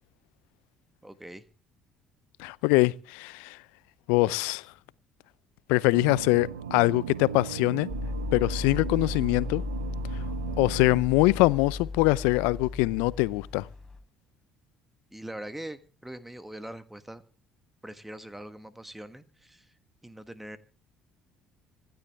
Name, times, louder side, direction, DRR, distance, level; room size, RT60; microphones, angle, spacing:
voice 1, 1.0-1.4 15.1-17.2 17.8-19.7 20.0-20.6, right 1 dB, 5° right, 1.4 m, -42 dB
voice 2, 2.4-3.6 4.1-4.6 5.7-7.9 8.3-9.6 10.6-13.7, left 22 dB, 70° left, 0.6 m, -23 dB
sound 1, 5.9-11.0, right 8 dB, 85° right, 1.1 m, -37 dB
sound 2, 7.9-14.0, left 3 dB, 10° left, 4.4 m, -35 dB
25.5 x 10.5 x 3.5 m
hypercardioid pair, 55°, 2 cm